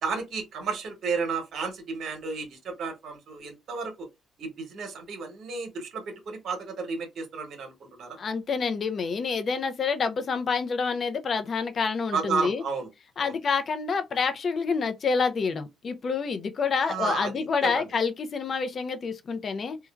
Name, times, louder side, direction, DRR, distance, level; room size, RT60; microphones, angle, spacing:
voice 1, 0.0-4.1 4.4-8.2 12.1-12.9 13.2-13.3 16.8-17.9, right 5 dB, 65° right, 0.9 m, -32 dB
voice 2, 8.2-12.6 13.2-19.8, left 5 dB, 50° left, 0.5 m, -28 dB
3.1 x 2.2 x 2.3 m
supercardioid pair, 60°, 0 cm